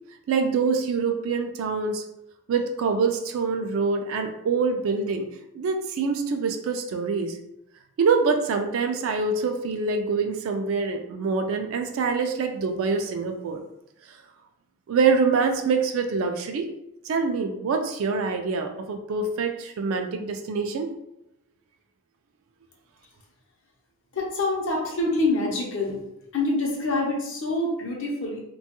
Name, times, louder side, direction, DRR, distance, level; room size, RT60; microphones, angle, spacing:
voice 1, 0.3-2.0 2.5-5.3 5.5-7.4 8.0-13.6 14.9-16.7 17.0-20.9, right 4 dB, 60° right, 5 dB, 0.3 m, -25 dB
voice 2, 24.1-26.0 26.3-28.4, left 2 dB, 55° left, -1 dB, 0.6 m, -26 dB
2.9 x 2.3 x 2.8 m, 0.85 s
head